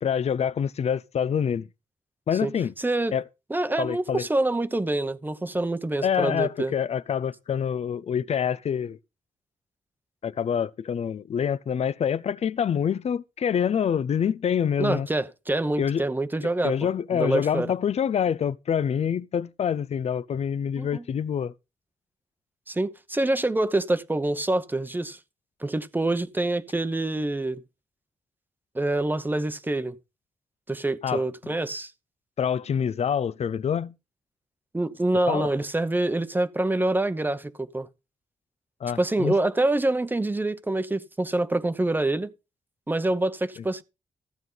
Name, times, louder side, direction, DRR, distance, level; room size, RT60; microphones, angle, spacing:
voice 1, 0.0-1.7 2.3-2.7 3.1-3.2 3.8-4.2 6.0-9.0 10.2-15.1 15.8-16.1 16.6-21.5 31.0-31.5 32.4-33.9 35.3-35.5 38.8-39.4, left 8 dB, 55° left, 0.6 m, -26 dB
voice 2, 2.8-3.1 3.5-6.7 14.8-17.7 20.8-21.0 22.7-25.2 25.6-27.6 28.7-30.0 30.7-31.9 34.7-37.9 39.0-42.3 42.9-43.8, right 2 dB, 15° right, 0.9 m, -26 dB
15.0 x 9.1 x 4.0 m
wide cardioid pair, 120°, 13 cm